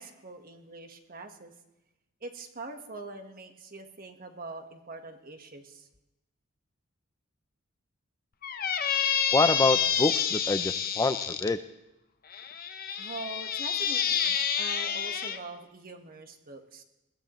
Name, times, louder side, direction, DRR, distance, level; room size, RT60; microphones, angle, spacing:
voice 1, 0.0-1.5 2.2-5.9 13.0-16.8, right 3 dB, 45° right, 6 dB, 1.4 m, -43 dB
Squeak, 8.4-11.5 12.3-15.4, left 8 dB, 45° left, 0.9 m, -28 dB
voice 2, 9.3-11.6, left 3 dB, 15° left, 10 dB, 0.4 m, -26 dB
20.5 x 15.5 x 3.1 m, 0.93 s
head